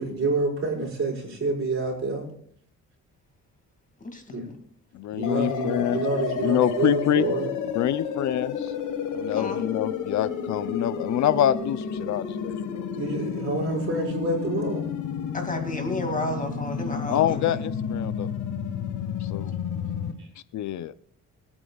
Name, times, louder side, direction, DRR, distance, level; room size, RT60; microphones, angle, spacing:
voice 1, 0.0-2.3 4.3-4.5 5.1-7.5 13.0-14.9 20.2-20.3, right 3 dB, 45° right, -2 dB, 5.3 m, -28 dB
voice 2, 4.0-4.6 9.3-9.6 15.3-17.5, left 2 dB, 25° left, 4 dB, 2.3 m, -32 dB
voice 3, 4.9-6.0 6.4-7.3 7.7-8.7 9.1-12.2 17.1-18.3 19.3-19.5 20.5-20.9, left 11 dB, 70° left, 15 dB, 0.6 m, -25 dB
sound 1, 5.2-20.1, left 7 dB, 85° left, 1.5 m, -31 dB
25.0 x 8.9 x 2.4 m, 0.64 s
cardioid pair, 90°, 30 cm